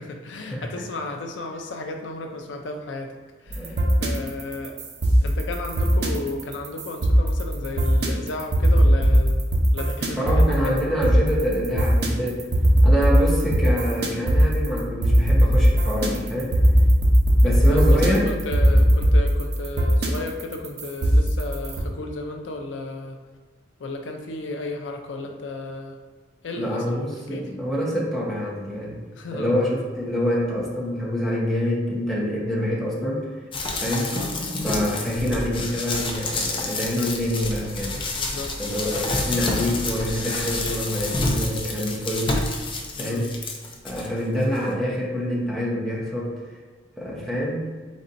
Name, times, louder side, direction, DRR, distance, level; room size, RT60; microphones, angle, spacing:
voice 1, 0.0-3.1 3.4-4.8 5.2-11.1 17.4-23.2 23.8-26.0 26.4-27.5 29.1-29.6 34.1-34.4 38.1-38.5 43.0-43.3, left 2 dB, 85° left, 4 dB, 0.5 m, -34 dB
sound 1, 3.5-21.8, equal, 60° right, 0.7 m, -19 dB
voice 2, 3.6-3.9 10.2-12.4 12.8-16.5 17.4-18.2 26.6-29.0 29.3-33.3 33.8-34.1 34.6-38.0 38.6-42.5 43.0-43.4 43.8-46.3 47.0-47.6, equal, ahead, -6 dB, 1.0 m, -26 dB
sound 2, 33.5-44.1 44.6-44.7, left 2 dB, 30° left, 0.6 m, -28 dB
4.2 x 4.2 x 2.6 m, 1.4 s
head